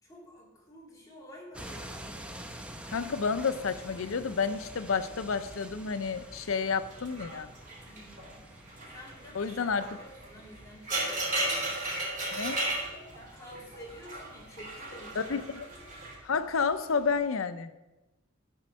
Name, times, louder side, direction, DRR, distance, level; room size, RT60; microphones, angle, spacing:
voice 1, 0.0-2.2 7.8-8.5 8.9-11.6 13.1-15.3 15.7-15.8, equal, 20° left, -5 dB, 2.8 m, -50 dB
sound 1, 1.5-17.3, right 1 dB, 5° right, 0.7 m, -49 dB
voice 2, 2.9-7.5 9.3-9.9 12.3-12.6 15.2-15.7 16.2-17.7, left 5 dB, 85° left, 12 dB, 0.6 m, -30 dB
sound 2, 3.3-5.7 6.0-6.4 6.8-16.1, right 1 dB, 45° right, 3.1 m, -36 dB
12.0 x 4.5 x 6.3 m, 1.0 s
head